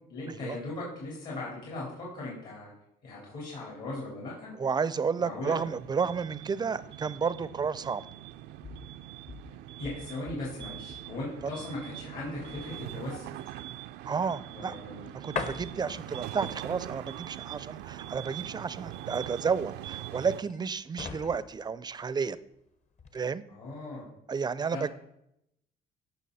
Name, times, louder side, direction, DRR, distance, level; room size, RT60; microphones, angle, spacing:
voice 1, 0.1-2.7 3.0-4.5 5.2-5.6 9.8-13.3 14.5-15.1 23.5-24.1 24.7-24.8, left 2 dB, 65° left, -5 dB, 4.0 m, -38 dB
voice 2, 4.6-8.0 11.4-11.5 14.0-14.8 15.1-22.4 23.1-23.4 24.3-24.9, right 5 dB, 25° right, 17 dB, 0.4 m, -31 dB
sound 1, 5.6-20.4, right 14 dB, 85° right, 0.4 m, -43 dB
sound 2, 8.2-22.6 22.9-23.2, left 4 dB, 45° left, 1.1 m, -45 dB
16.0 x 6.0 x 4.1 m, 0.81 s
cardioid pair, 110°, 17 cm